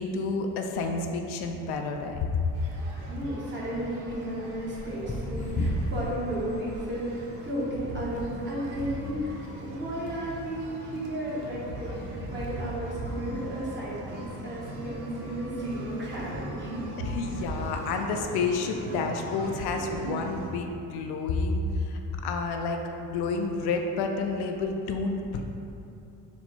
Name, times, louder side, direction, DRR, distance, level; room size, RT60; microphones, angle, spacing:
voice 1, 0.0-2.4 17.0-25.4, left 4 dB, 75° left, 3 dB, 0.5 m, -30 dB
sound 1, 2.3-2.9 3.7-6.2 6.5-7.0 8.1-9.3 10.1-10.2, left 1 dB, 20° left, 0.3 m, -34 dB
sound 2, 2.5-20.5, right 2 dB, 85° right, 0.7 m, -39 dB
voice 2, 3.1-16.8, right 1 dB, 30° right, -7 dB, 1.2 m, -34 dB
4.1 x 2.3 x 4.4 m, 2.7 s
cardioid pair, 95°, 39 cm